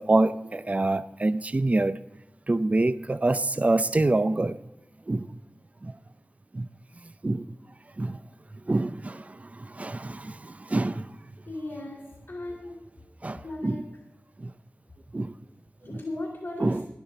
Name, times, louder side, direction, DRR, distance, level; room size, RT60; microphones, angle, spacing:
voice 1, 0.0-2.0 2.5-4.6 5.1-5.3 5.8-6.0 6.5-6.7 7.2-7.5 8.0-8.2 8.7-11.1 13.2-13.8 14.4-14.5 15.1-15.3 15.9-16.0 16.6-16.9, right 2 dB, 35° right, 0.5 m, -26 dB
voice 2, 11.5-12.0 12.3-12.8 13.4-13.8 15.8-16.7, left 2 dB, 60° left, 2.7 m, -36 dB
12.5 x 11.0 x 4.1 m
wide cardioid pair, 50°, 4 cm